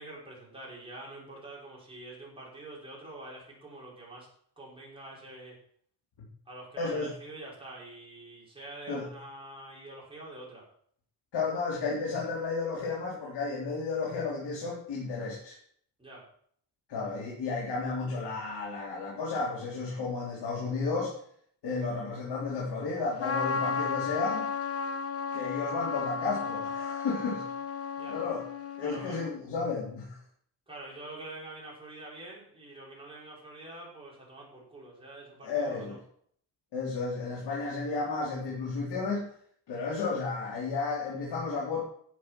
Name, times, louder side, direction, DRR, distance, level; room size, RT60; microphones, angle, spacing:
voice 1, 0.0-4.3 4.6-5.6 6.5-10.7 16.0-16.3 28.0-28.2 28.8-29.3 30.7-36.0, right 2 dB, 10° right, -5 dB, 5.1 m, -46 dB
voice 2, 6.8-7.1 8.9-9.1 11.3-15.6 16.9-21.1 21.6-24.5 25.3-27.5 28.1-28.4 28.8-30.2 35.4-36.0 36.7-39.3 39.7-41.8, left 4 dB, 65° left, -4 dB, 3.8 m, -33 dB
Trumpet, 23.2-29.4, left 5 dB, 35° left, 0.9 m, -34 dB
11.5 x 7.8 x 6.2 m, 0.64 s
wide cardioid pair, 160°, 43 cm